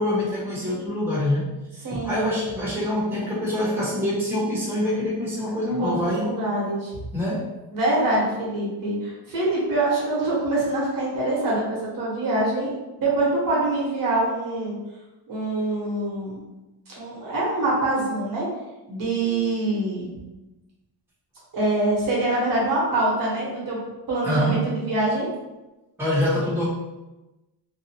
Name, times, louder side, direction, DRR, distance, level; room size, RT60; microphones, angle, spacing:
voice 1, 0.0-1.5 1.8-6.4 7.1-7.5 24.2-24.7 26.0-26.7, left 1 dB, 5° right, -8 dB, 0.9 m, -25 dB
voice 2, 1.8-2.3 5.8-6.9 7.7-14.8 15.3-16.4 17.0-18.5 18.9-20.1 21.5-23.8 24.1-25.3, right 2 dB, 50° right, -5 dB, 1.1 m, -24 dB
2.7 x 2.3 x 2.7 m, 1.1 s
cardioid pair, 145°, 43 cm